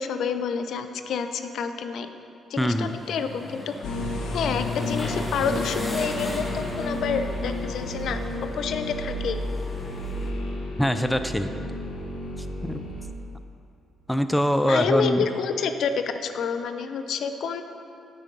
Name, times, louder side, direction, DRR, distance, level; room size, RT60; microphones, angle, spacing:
voice 1, 0.0-2.1 2.5-3.7 4.3-8.2 8.5-9.4 14.6-15.9 16.2-17.6, left 6 dB, 70° left, 8 dB, 0.5 m, -28 dB
voice 2, 2.6-3.0 10.8-11.5 12.6-12.8 14.1-15.3, equal, 5° left, 9 dB, 0.4 m, -23 dB
sound 1, 2.7-10.3, left 1 dB, 20° left, 1.3 m, -38 dB
sound 2, 3.8-13.1, left 1 dB, 90° left, 1.0 m, -31 dB
9.2 x 8.2 x 3.8 m, 2.6 s
cardioid pair, 90°, 0 cm